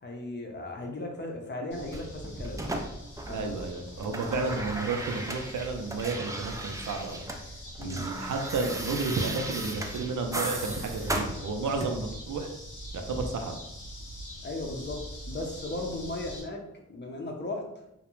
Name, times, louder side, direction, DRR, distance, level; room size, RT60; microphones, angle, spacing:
voice 1, 0.0-2.6 3.3-3.5 7.8-8.1 14.4-16.6 16.9-17.6, left 2 dB, 35° left, 1 dB, 0.6 m, -36 dB
sound 1, 1.7-16.4, equal, 85° left, 0.9 m, -43 dB
sound 2, 1.9-3.6 3.9-7.4 7.7-12.1 13.1-13.3, right 1 dB, 10° right, 0.3 m, -36 dB
voice 2, 3.3-7.2 7.8-12.5 12.9-13.6, right 3 dB, 75° right, 4 dB, 0.5 m, -32 dB
2.3 x 2.1 x 3.0 m, 0.85 s
cardioid pair, 45°, 31 cm